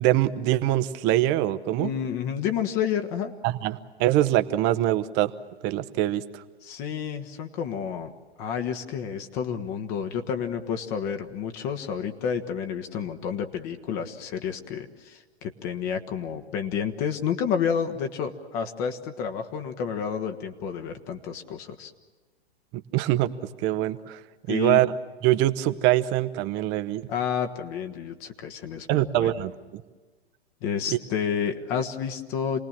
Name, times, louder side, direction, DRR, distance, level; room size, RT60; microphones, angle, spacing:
voice 1, 0.0-1.9 3.4-5.3 5.6-6.4 22.9-23.3 23.6-24.2 24.5-25.0 25.2-27.1 28.9-29.8 30.9-31.0, right 14 dB, 35° right, 12 dB, 1.0 m, -24 dB
voice 2, 1.8-3.3 6.6-8.1 8.4-21.9 24.5-24.8 27.1-29.3 30.6-32.6, left 7 dB, 40° left, 6 dB, 1.6 m, -30 dB
28.0 x 19.5 x 7.5 m, 1.4 s
figure-of-eight pair, 105°, 33 cm